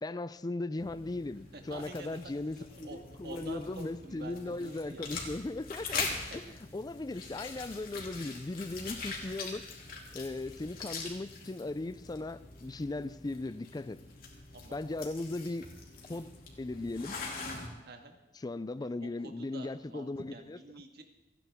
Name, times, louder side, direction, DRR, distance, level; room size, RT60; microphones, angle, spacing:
voice 1, 0.0-9.6 10.1-14.0 14.7-15.7 16.1-17.2 18.4-20.6, left 2 dB, 25° left, 0.4 m, -38 dB
sound 1, 0.8-17.7, left 4 dB, 55° left, 2.6 m, -43 dB
voice 2, 1.5-2.2 2.5-5.1 6.3-6.5 14.5-14.8 17.9-18.2 19.0-21.0, right 2 dB, 65° right, 1.7 m, -48 dB
28.5 x 10.0 x 3.6 m
head